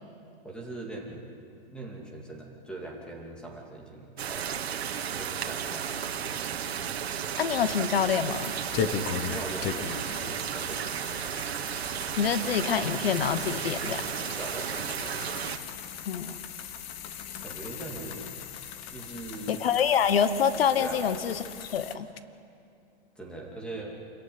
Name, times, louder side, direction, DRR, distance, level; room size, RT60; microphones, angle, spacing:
voice 1, 0.4-1.2 1.7-4.8 5.2-6.1 9.3-11.0 14.4-14.8 17.4-18.3 18.9-19.5 20.8-21.0 23.2-24.0, right 2 dB, 5° left, -1 dB, 2.6 m, -41 dB
sound 1, 4.2-15.6, right 8 dB, 85° right, 1.9 m, -33 dB
voice 2, 7.4-8.5 12.2-14.0 16.1-16.4 19.5-22.1, left 7 dB, 70° left, 12 dB, 1.2 m, -26 dB
sound 2, 8.3-22.0, left 7 dB, 20° left, 0.8 m, -38 dB
28.0 x 15.0 x 9.7 m, 2.6 s
hypercardioid pair, 170°, 31 cm